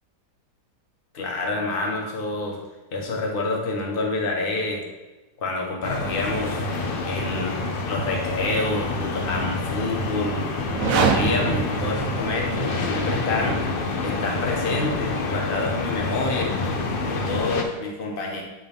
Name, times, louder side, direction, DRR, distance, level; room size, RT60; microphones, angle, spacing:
voice 1, 1.1-2.6 2.9-4.8 5.4-6.6 7.0-10.4 10.9-13.6 14.0-16.6 17.1-18.4, left 2 dB, 35° left, 0 dB, 1.2 m, -27 dB
sound 1, 5.8-17.6, left 3 dB, 55° left, 0.6 m, -27 dB
sound 2, 10.6-12.7, right 5 dB, 65° right, 0.9 m, -25 dB
9.8 x 3.8 x 3.5 m, 1.1 s
omnidirectional pair, 1.8 m